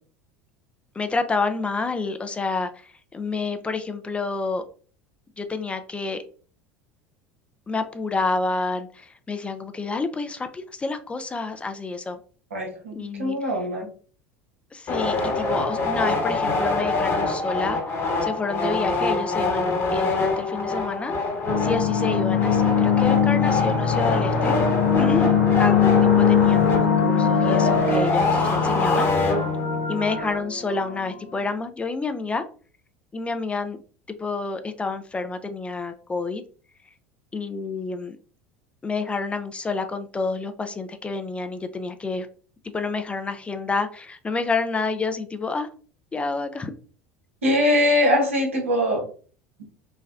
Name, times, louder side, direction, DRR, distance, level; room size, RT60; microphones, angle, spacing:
voice 1, 0.9-4.6 5.4-6.2 7.7-12.2 12.9-13.4 14.7-17.8 18.2-21.1 21.6-24.5 25.0-25.3 25.6-25.7 26.0-29.1 29.9-32.4 33.1-33.8 34.1-36.4 37.3-38.2 38.8-42.3 42.6-45.7 46.1-46.7, left 3 dB, 15° left, 9 dB, 0.4 m, -29 dB
voice 2, 12.5-13.9 47.4-49.1, left 1 dB, 85° right, -1 dB, 0.9 m, -22 dB
sound 1, 14.9-29.9, left 3 dB, 40° left, 1.1 m, -25 dB
sound 2, 21.5-31.2, left 6 dB, 85° left, 0.7 m, -21 dB
3.3 x 2.1 x 2.4 m, 0.41 s
figure-of-eight pair, 70°, 7 cm